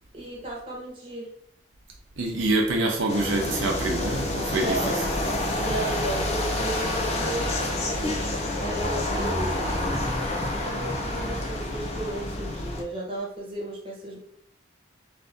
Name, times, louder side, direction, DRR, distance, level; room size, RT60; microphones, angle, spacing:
voice 1, 0.1-1.3 4.6-5.1 5.5-8.2 8.6-14.2, right 2 dB, 25° right, 1.2 m, -34 dB
voice 2, 2.2-4.9, right 2 dB, 80° right, 0.6 m, -26 dB
sound 1, 3.1-12.8, left 1 dB, 35° left, 0.5 m, -28 dB
4.0 x 2.6 x 3.4 m
head